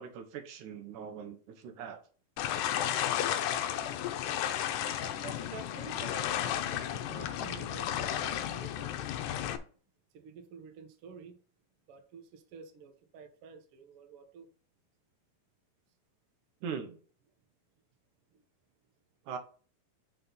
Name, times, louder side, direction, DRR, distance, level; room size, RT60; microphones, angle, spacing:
voice 1, 0.0-2.0 16.6-17.0 19.3-19.4, right 6 dB, 70° right, 2.4 m, -41 dB
sound 1, 2.4-9.6, left 11 dB, 80° left, 2.0 m, -33 dB
voice 2, 5.1-9.6 10.1-11.4 11.9-14.5 18.3-18.4, right 6 dB, 85° right, 1.2 m, -50 dB
6.1 x 4.1 x 5.4 m
omnidirectional pair, 4.0 m